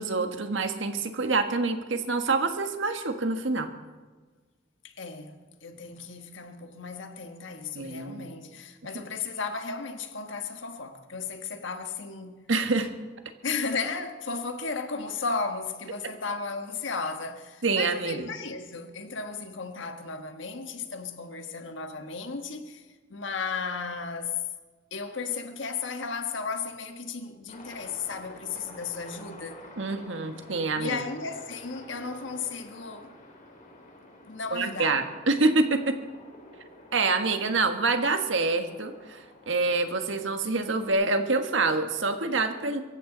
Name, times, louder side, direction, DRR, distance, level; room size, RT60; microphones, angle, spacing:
voice 1, 0.0-3.7 7.7-8.3 12.5-12.9 17.6-18.3 29.8-31.0 34.5-35.9 36.9-42.8, right 3 dB, 80° right, 1.5 m, -26 dB
voice 2, 4.8-12.4 13.4-24.4 24.9-29.6 30.8-33.1 34.3-35.0, left 4 dB, 75° left, 1.4 m, -35 dB
Aircraft, 27.5-40.9, left 1 dB, 40° left, 3.5 m, -49 dB
23.5 x 14.5 x 4.0 m
head